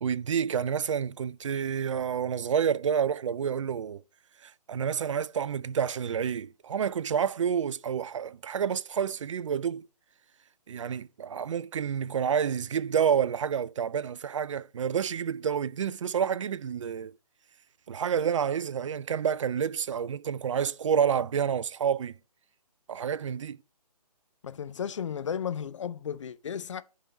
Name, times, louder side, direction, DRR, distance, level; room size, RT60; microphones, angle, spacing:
voice 1, 0.0-4.0 4.4-9.9 10.7-17.1 17.9-22.1 22.9-23.6, right 7 dB, 50° right, 0.4 m, -29 dB
voice 2, 24.4-26.8, left 8 dB, 50° left, 0.6 m, -34 dB
10.5 x 3.8 x 3.9 m
figure-of-eight pair, 145°, 21 cm